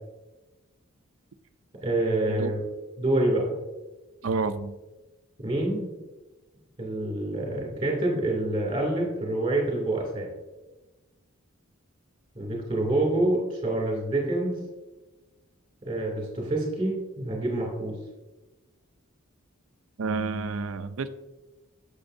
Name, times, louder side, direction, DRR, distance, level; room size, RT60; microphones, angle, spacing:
voice 1, 1.8-2.6 3.0-3.5 5.4-5.9 6.8-10.3 12.3-14.6 15.8-18.0, right 1 dB, 25° right, -1 dB, 2.6 m, -27 dB
voice 2, 4.2-4.8 20.0-21.1, right 4 dB, 75° right, 11 dB, 0.5 m, -29 dB
8.8 x 6.9 x 2.7 m, 1.1 s
head